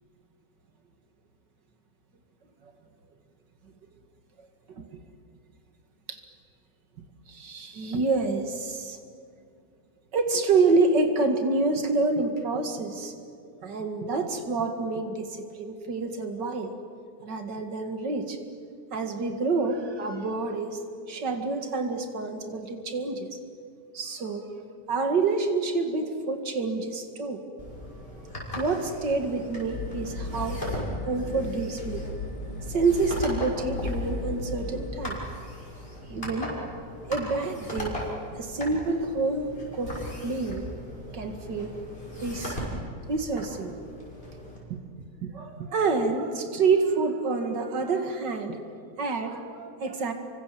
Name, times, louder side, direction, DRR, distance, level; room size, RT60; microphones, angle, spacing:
voice 1, 7.3-9.0 10.1-13.1 13.6-16.7 17.2-18.4 18.9-20.8 21.1-23.4 23.9-24.5 24.9-27.4 28.6-30.6 31.0-32.1 32.7-35.2 36.1-36.6 37.1-38.0 38.3-40.0 40.2-40.7 41.1-41.8 42.2-42.6 43.1-43.8 44.7-44.8 45.2-48.6 49.0-50.1, right 3 dB, 85° right, 6 dB, 2.6 m, -27 dB
sound 1, 27.6-44.6, equal, 30° left, 6.8 m, -38 dB
sound 2, 29.7-34.9, left 2 dB, 50° left, 2.5 m, -36 dB
29.0 x 25.0 x 7.7 m, 2.5 s
omnidirectional pair, 1.8 m